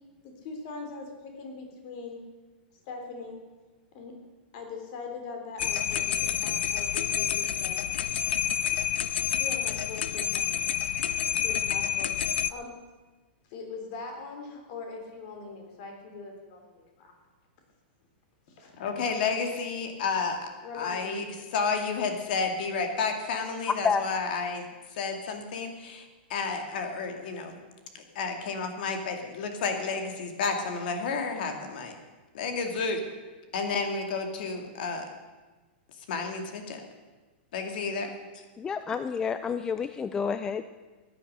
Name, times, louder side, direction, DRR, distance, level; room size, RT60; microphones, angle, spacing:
voice 1, 0.2-2.2 2.8-3.4 3.9-4.1 4.5-7.8 9.4-10.5 11.4-12.7 13.5-17.1 18.5-19.0 20.6-21.2, left 4 dB, 45° left, 3 dB, 3.3 m, -41 dB
sound 1, 5.6-12.5, left 10 dB, 85° left, 0.6 m, -28 dB
voice 2, 18.8-20.4 20.7-21.2 21.5-27.6 27.9-32.0 32.3-33.0 33.5-35.1 36.1-36.8 37.5-38.1, left 4 dB, 60° left, 5 dB, 2.2 m, -31 dB
voice 3, 38.6-40.6, left 6 dB, 10° left, 11 dB, 0.3 m, -29 dB
16.0 x 9.9 x 6.5 m, 1.3 s
supercardioid pair, 160°, 6 cm